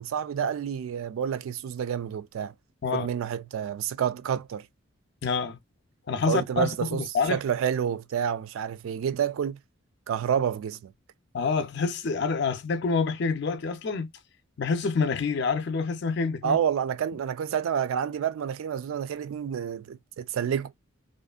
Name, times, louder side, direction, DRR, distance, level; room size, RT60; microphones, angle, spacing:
voice 1, 0.0-2.5 2.9-4.7 6.3-9.6 10.1-10.9 16.4-20.7, right 8 dB, 75° right, 0.3 m, -29 dB
voice 2, 5.2-5.6 6.1-7.4 11.3-14.1 14.6-16.6, left 5 dB, 55° left, 0.4 m, -27 dB
2.6 x 2.3 x 2.4 m
head